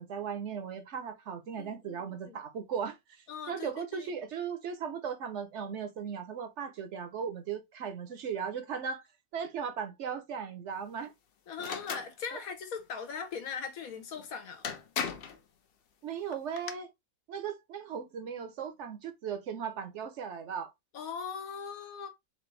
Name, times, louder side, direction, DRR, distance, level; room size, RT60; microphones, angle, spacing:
voice 1, 0.0-9.0 9.3-11.1 12.3-12.4 16.0-16.9 17.3-20.7, right 7 dB, 65° right, 0.9 m, -37 dB
voice 2, 1.6-2.4 3.3-4.1 11.5-14.7 20.9-22.1, left 6 dB, 85° left, 1.4 m, -40 dB
sound 1, 11.6-12.1 14.2-14.3 14.6-15.4 16.3-16.7, left 7 dB, 55° left, 0.7 m, -36 dB
4.3 x 2.5 x 3.2 m
omnidirectional pair, 1.5 m